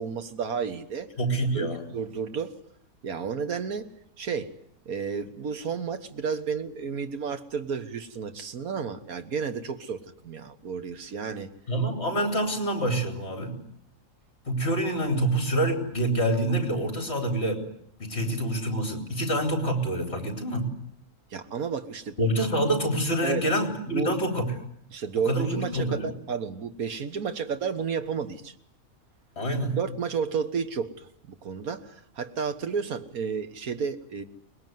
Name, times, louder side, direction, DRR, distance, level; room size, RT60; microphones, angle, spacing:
voice 1, 0.0-1.1 1.5-2.6 3.0-4.6 4.9-11.5 18.2-18.4 21.3-22.2 23.2-23.5 23.9-24.2 24.9-28.5 29.6-34.2, right 6 dB, 80° right, 8 dB, 1.8 m, -32 dB
voice 2, 1.2-1.8 11.7-13.6 14.4-17.6 18.0-20.7 22.2-24.5 25.3-26.1 29.4-29.8, right 1 dB, 45° left, 4 dB, 4.2 m, -26 dB
24.0 x 20.5 x 9.4 m, 0.70 s
omnidirectional pair, 1.5 m